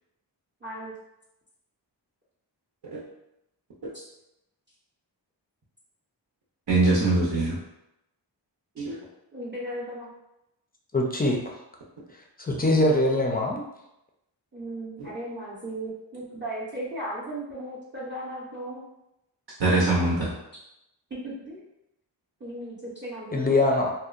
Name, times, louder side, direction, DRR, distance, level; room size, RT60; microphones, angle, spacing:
voice 1, 0.6-0.9 3.9-4.0 9.3-10.1 14.5-18.8 21.2-21.7 22.4-23.5, right 1 dB, 25° right, -8 dB, 0.6 m, -36 dB
voice 2, 6.7-7.6 8.8-9.0 15.0-15.1 19.6-20.3, right 2 dB, 70° right, -6 dB, 0.7 m, -23 dB
voice 3, 10.9-11.6 12.4-13.6 23.3-23.9, left 1 dB, 20° left, 1 dB, 0.4 m, -23 dB
2.7 x 2.0 x 2.4 m, 0.87 s
wide cardioid pair, 65°, 44 cm